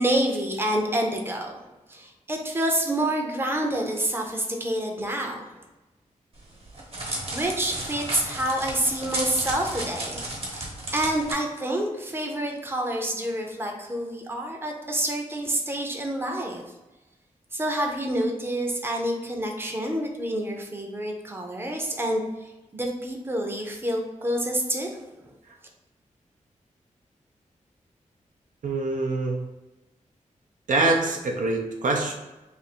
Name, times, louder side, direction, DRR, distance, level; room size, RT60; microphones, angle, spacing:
voice 1, 0.0-1.5 1.9-5.4 7.3-16.6 17.5-25.0, right 1 dB, 15° right, 1 dB, 0.6 m, -28 dB
Crackle, 6.4-11.3, right 1 dB, 45° right, 1.0 m, -33 dB
voice 2, 28.6-29.4 30.7-32.2, right 2 dB, 80° right, 1 dB, 0.5 m, -24 dB
2.6 x 2.5 x 4.2 m, 1.0 s
wide cardioid pair, 80°, 13 cm